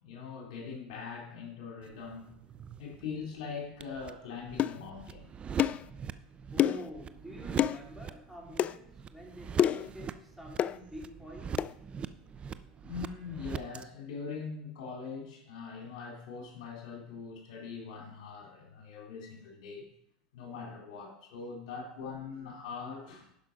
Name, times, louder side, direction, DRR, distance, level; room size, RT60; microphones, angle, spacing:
voice 1, 0.0-2.3 2.8-5.3 12.8-19.9 20.3-23.3, left 5 dB, 75° left, 0 dB, 2.8 m, -42 dB
sound 1, 1.8-13.8, right 7 dB, 30° right, 0.5 m, -44 dB
sound 2, 4.6-4.8 5.6-5.9 6.6-6.9 7.6-7.8 8.6-8.8 9.6-9.9 10.6-10.8 11.6-11.7, left 10 dB, 35° left, 0.4 m, -27 dB
voice 2, 6.5-11.8, equal, ahead, -3 dB, 3.5 m, -47 dB
11.0 x 5.6 x 5.1 m, 0.72 s
hypercardioid pair, 105°, 4 cm